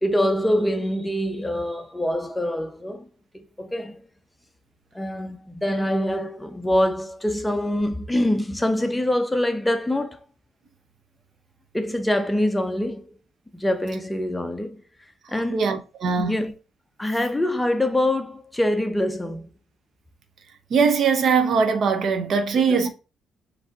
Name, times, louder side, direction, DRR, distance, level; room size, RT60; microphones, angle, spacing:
voice 1, 0.0-3.1 3.3-4.0 4.9-10.2 11.7-13.1 13.5-14.8 15.3-15.6 16.2-16.5 17.0-19.5 22.7-22.9, left 1 dB, 10° left, 0.7 m, -24 dB
voice 2, 15.5-16.4 20.7-22.9, right 5 dB, 60° right, 0.7 m, -21 dB
4.9 x 3.3 x 2.8 m
cardioid pair, 90°, 0 cm